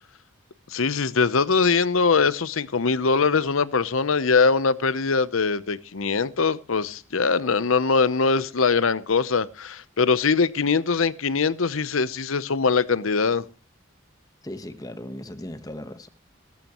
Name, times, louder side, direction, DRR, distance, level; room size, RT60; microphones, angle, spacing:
voice 1, 0.7-13.4, left 4 dB, 80° left, 0.8 m, -22 dB
voice 2, 14.4-16.1, left 1 dB, 20° left, 1.1 m, -37 dB
18.0 x 14.5 x 3.0 m
head